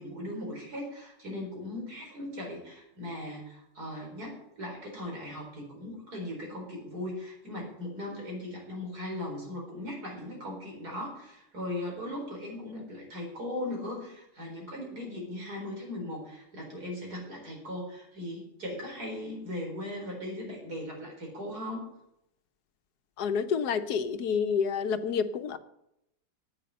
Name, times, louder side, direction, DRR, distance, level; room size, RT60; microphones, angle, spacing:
voice 1, 0.0-21.9, left 1 dB, 75° right, 0 dB, 4.9 m, -38 dB
voice 2, 23.2-25.6, left 6 dB, 80° left, 11 dB, 1.4 m, -28 dB
9.4 x 8.4 x 9.6 m, 0.81 s
omnidirectional pair, 1.7 m